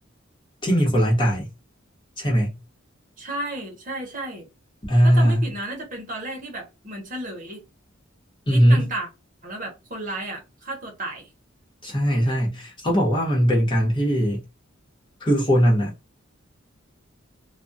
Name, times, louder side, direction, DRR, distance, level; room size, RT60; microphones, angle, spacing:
voice 1, 0.6-1.5 2.2-2.6 4.9-5.5 8.5-8.9 11.8-14.4 15.2-15.9, equal, 25° left, 1.0 m, -19 dB
voice 2, 3.2-4.5 5.0-7.6 8.5-9.1 9.4-11.3, right 1 dB, 40° right, 0.8 m, -33 dB
2.3 x 2.2 x 2.6 m
head